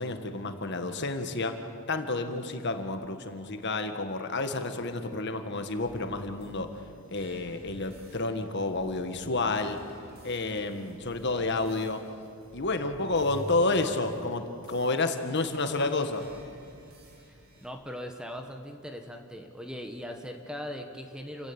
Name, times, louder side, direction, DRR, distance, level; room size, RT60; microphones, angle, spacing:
voice 1, 0.0-1.6 1.9-6.7 7.1-9.8 10.2-12.0 12.5-16.3, left 2 dB, 50° left, 7 dB, 1.6 m, -30 dB
sound 1, 5.7-17.7, equal, 45° right, 4.8 m, -50 dB
voice 2, 17.6-21.5, equal, 5° right, 4 dB, 1.4 m, -39 dB
29.5 x 15.5 x 8.9 m, 2.5 s
head